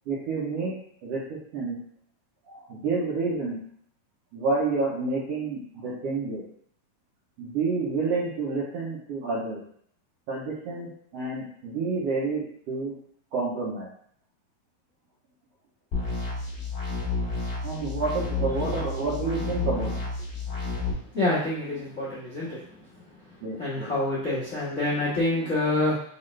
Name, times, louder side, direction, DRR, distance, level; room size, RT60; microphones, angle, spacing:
voice 1, 0.1-0.7 1.0-1.8 2.5-3.6 4.3-6.4 7.4-9.6 10.3-12.9 13.3-13.9 17.6-19.9 23.4-23.9, right 3 dB, 80° right, -6 dB, 1.4 m, -29 dB
sound 1, 15.9-20.9, left 3 dB, 45° left, 1.6 m, -30 dB
voice 2, 21.1-22.6 23.6-26.0, left 2 dB, 80° left, -8 dB, 0.6 m, -27 dB
6.1 x 2.5 x 3.2 m, 0.63 s
omnidirectional pair, 3.9 m